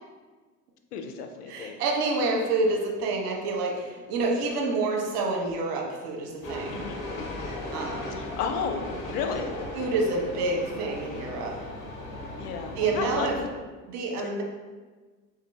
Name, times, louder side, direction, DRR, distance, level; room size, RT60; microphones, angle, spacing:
voice 1, 0.9-1.8 6.7-7.0 8.2-9.5 12.4-13.5 14.2-14.3, left 6 dB, 80° left, 5 dB, 0.6 m, -33 dB
voice 2, 1.5-6.8 7.7-8.2 9.7-11.5 12.7-13.4 13.9-14.4, right 3 dB, 70° right, 0 dB, 1.0 m, -28 dB
sound 1, 6.4-13.5, left 2 dB, 45° left, 1.2 m, -37 dB
3.7 x 3.7 x 3.2 m, 1.3 s
hypercardioid pair, 65°, 46 cm